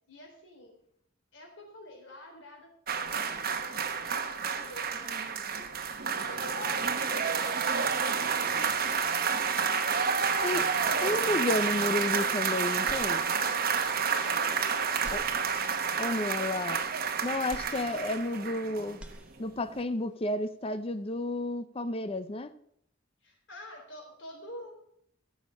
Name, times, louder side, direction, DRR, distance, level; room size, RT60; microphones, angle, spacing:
voice 1, 0.1-0.8 1.3-2.7 3.1-5.7 6.1-11.5 14.2-15.3 23.2-24.7, left 1 dB, 70° left, 3.9 m, -48 dB
sound 1, 2.9-19.2 19.4-19.6, right 6 dB, 50° right, 1.1 m, -30 dB
voice 2, 11.0-13.3 15.1-15.2 16.0-16.8 17.2-19.0 19.4-22.5, left 2 dB, 30° left, 0.6 m, -31 dB
sound 2, 12.8-13.7 14.2-14.3 14.9-16.0 17.5-18.6 18.8-19.8, equal, 5° right, 1.1 m, -48 dB
14.0 x 7.1 x 6.3 m
head